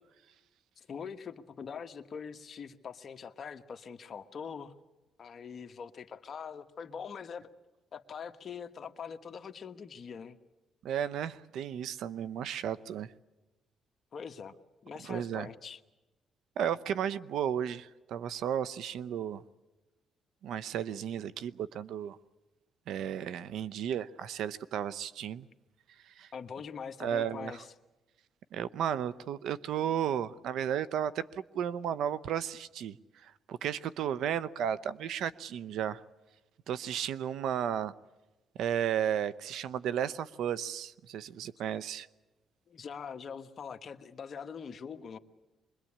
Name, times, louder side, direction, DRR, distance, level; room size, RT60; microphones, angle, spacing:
voice 1, 0.8-4.7 5.2-7.5 7.9-10.4 14.1-14.6 14.8-15.8 26.3-27.7 42.7-45.2, left 6 dB, 50° left, 1.4 m, -43 dB
voice 2, 10.8-13.1 15.0-15.5 16.6-19.4 20.4-22.2 22.9-25.5 26.0-26.3 27.0-27.6 28.5-33.0 33.2-36.0 36.7-37.9 38.6-42.1, right 9 dB, 80° right, 0.8 m, -34 dB
25.0 x 22.0 x 8.7 m
cardioid pair, 90°, 0 cm